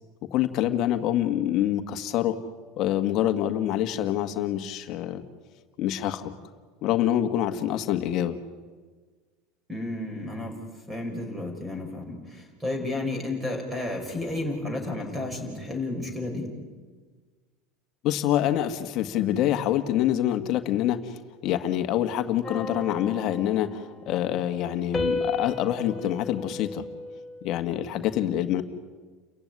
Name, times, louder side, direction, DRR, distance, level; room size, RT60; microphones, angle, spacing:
voice 1, 0.3-2.4 2.8-5.2 5.8-6.3 6.8-8.4 18.0-26.8 27.4-28.6, left 11 dB, 45° left, 7 dB, 1.6 m, -26 dB
voice 2, 9.7-10.6 10.9-16.5, left 2 dB, 10° right, 4 dB, 6.1 m, -32 dB
sound 1, 22.4-24.2 24.9-27.6, left 2 dB, 15° left, 2.6 m, -34 dB
30.0 x 15.5 x 9.7 m, 1.4 s
supercardioid pair, 145°, 0 cm